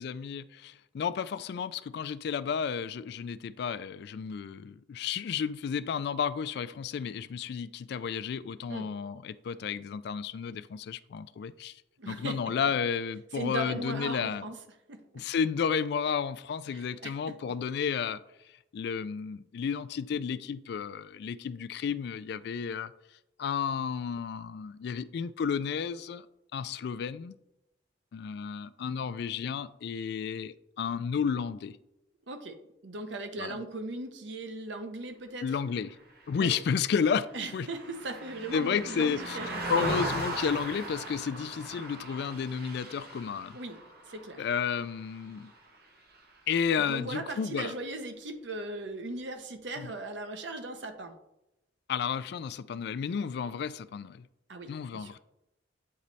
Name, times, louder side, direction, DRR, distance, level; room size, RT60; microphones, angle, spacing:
voice 1, 0.0-11.8 12.1-14.5 15.1-18.2 18.7-22.9 23.4-26.3 26.5-27.4 28.1-31.8 33.4-33.6 35.4-35.9 36.3-37.3 37.5-37.7 38.5-39.4 39.7-43.6 44.4-45.5 46.5-47.7 49.8-49.9 51.9-54.3 54.7-55.2, left 6 dB, 60° left, 0.3 m, -32 dB
voice 2, 12.0-12.4 13.3-14.5 14.9-15.0 16.7-17.3 32.3-32.6 32.8-35.4 36.4-36.5 37.3-39.6 43.5-43.8 44.1-44.5 46.8-51.1 54.5-55.1, right 2 dB, 75° right, 0.8 m, -38 dB
Car passing by, 36.2-45.8 46.1-46.4, right 1 dB, 55° right, 1.1 m, -38 dB
8.5 x 3.1 x 4.0 m
head